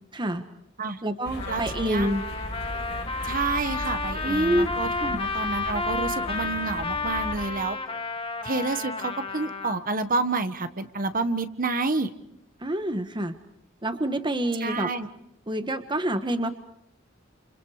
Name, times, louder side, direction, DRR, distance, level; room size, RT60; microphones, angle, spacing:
voice 1, 0.1-0.4 1.0-2.2 4.2-5.2 12.6-13.3 13.8-14.9 15.5-16.5, right 1 dB, 25° right, 8 dB, 1.3 m, -27 dB
sound 1, 1.2-7.5, left 1 dB, 60° left, 4.8 m, -37 dB
Trumpet, 1.4-9.8, left 3 dB, 30° left, 1.8 m, -31 dB
voice 2, 1.5-2.1 3.2-7.8 8.4-12.1 14.6-15.1, right 3 dB, 45° right, 9 dB, 1.4 m, -29 dB
29.5 x 28.5 x 5.0 m, 0.79 s
head